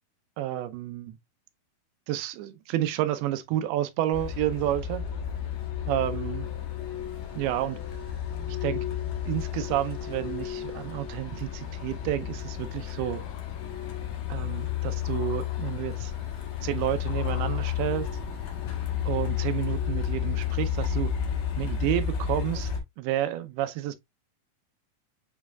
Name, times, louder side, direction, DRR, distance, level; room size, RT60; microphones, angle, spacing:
voice 1, 0.4-1.2 2.1-5.0 5.9-6.5 7.4-7.8 8.5-8.8 9.3-13.2 14.3-16.1 16.6-18.1 19.1-21.1 21.6-22.7 23.0-24.0, right 13 dB, 90° right, 2.6 m, -30 dB
Truck, 4.1-22.8, left 9 dB, 60° left, 1.8 m, -32 dB
sound 1, 10.4-10.8 11.3-19.1 19.4-19.5, left 6 dB, 85° left, 2.9 m, -48 dB
7.1 x 3.1 x 2.3 m
omnidirectional pair, 4.4 m